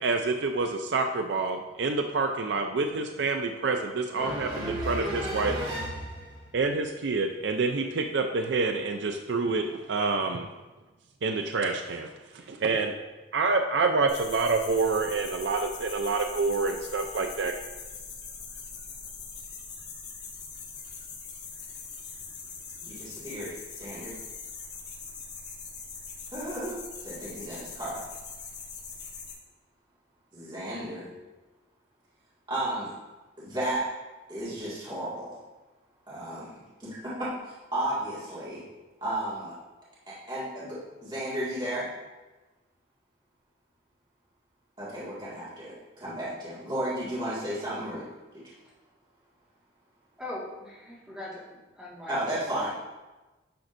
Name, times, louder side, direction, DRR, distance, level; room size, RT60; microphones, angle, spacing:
voice 1, 0.0-5.5 6.5-10.5 11.2-12.1 12.3-12.9 13.3-17.5, right 3 dB, 70° right, 5 dB, 0.5 m, -27 dB
voice 2, 4.2-6.4 22.8-24.1 26.3-28.0 30.3-31.1 32.5-32.9 33.4-33.8 34.3-35.4 36.1-36.5 36.8-38.6 39.0-39.5 40.1-41.9 44.8-48.0 52.1-52.7, right 1 dB, 25° right, -10 dB, 1.9 m, -33 dB
sound 1, 14.1-29.3, left 5 dB, 70° left, 2.3 m, -42 dB
voice 3, 50.2-52.2 52.4-52.7, left 1 dB, 5° right, -8 dB, 1.8 m, -41 dB
10.5 x 6.0 x 2.6 m, 1.2 s
head